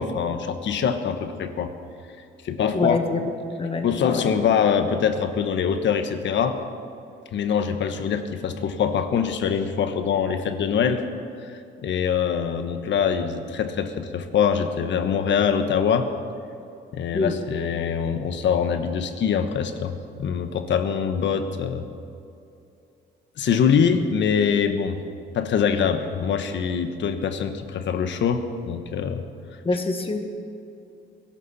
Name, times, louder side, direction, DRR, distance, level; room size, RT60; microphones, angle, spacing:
voice 1, 0.0-1.7 2.4-3.0 3.8-6.6 7.3-11.0 11.4-16.1 16.9-21.8 23.4-25.0 25.3-29.2, left 7 dB, 65° left, 8 dB, 1.2 m, -24 dB
voice 2, 2.7-3.3 3.6-4.2 17.1-17.3 29.7-30.3, left 3 dB, 30° left, 5 dB, 1.7 m, -25 dB
21.0 x 12.0 x 4.2 m, 2.6 s
cardioid pair, 90°, 20 cm